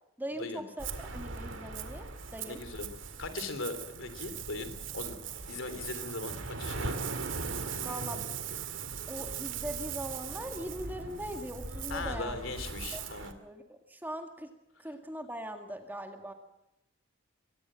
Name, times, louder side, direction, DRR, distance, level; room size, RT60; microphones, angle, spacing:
voice 1, 0.2-2.6 7.8-8.3 9.1-12.4 12.9-13.1 13.4-14.5 14.8-16.3, right 1 dB, 10° right, 5 dB, 1.9 m, -41 dB
Ocean, 0.8-13.3, right 5 dB, 70° right, 2.0 m, -39 dB
voice 2, 2.5-2.9 3.2-5.1 5.5-7.1 11.9-13.3, left 3 dB, 75° left, 10 dB, 3.2 m, -39 dB
23.0 x 18.5 x 7.6 m, 0.87 s
head